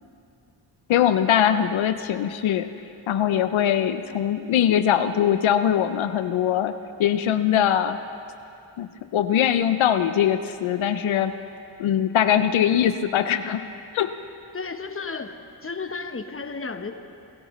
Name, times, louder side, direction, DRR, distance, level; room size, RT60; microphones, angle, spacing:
voice 1, 0.9-2.7 3.1-6.7 7.0-8.0 8.8-11.3 11.8-13.6 13.9-14.1, left 10 dB, 85° left, 10 dB, 0.6 m, -22 dB
voice 2, 14.5-16.9, left 4 dB, 30° left, 7 dB, 1.0 m, -33 dB
24.5 x 12.0 x 3.1 m, 2.6 s
cardioid pair, 45°, 46 cm